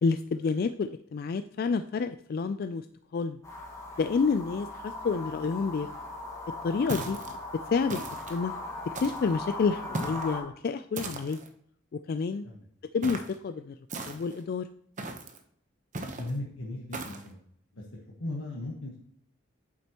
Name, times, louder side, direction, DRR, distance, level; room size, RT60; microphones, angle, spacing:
voice 1, 0.0-2.9 3.1-3.4 4.0-5.9 6.6-7.2 7.7-8.5 9.0-11.4 12.1-12.5 12.9-13.7 14.1-14.7, left 4 dB, 50° left, 9 dB, 0.3 m, -29 dB
sound 1, 3.4-10.4, left 2 dB, 15° left, 1.9 m, -39 dB
sound 2, 6.9-7.4 7.9-8.4 8.9-9.4 9.9-10.3 11.0-11.5 13.0-13.4 13.9-14.4 15.0-15.4 15.9-16.3 16.9-17.3, right 2 dB, 40° right, 0.9 m, -37 dB
voice 2, 16.2-17.4 17.7-19.0, left 2 dB, 80° left, -2 dB, 1.3 m, -37 dB
8.6 x 7.4 x 3.0 m, 0.65 s
head